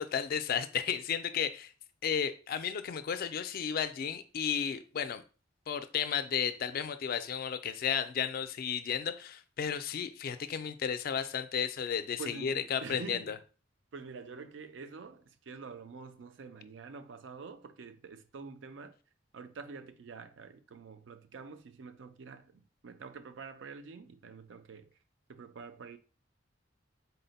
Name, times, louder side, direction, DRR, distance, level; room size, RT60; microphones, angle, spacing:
voice 1, 0.0-1.7 2.0-5.2 5.7-13.3, left 7 dB, 55° left, 0.3 m, -33 dB
voice 2, 12.2-13.3 13.9-19.0 19.3-24.9 25.3-26.0, right 4 dB, 80° right, 0.4 m, -47 dB
4.0 x 2.1 x 4.0 m
head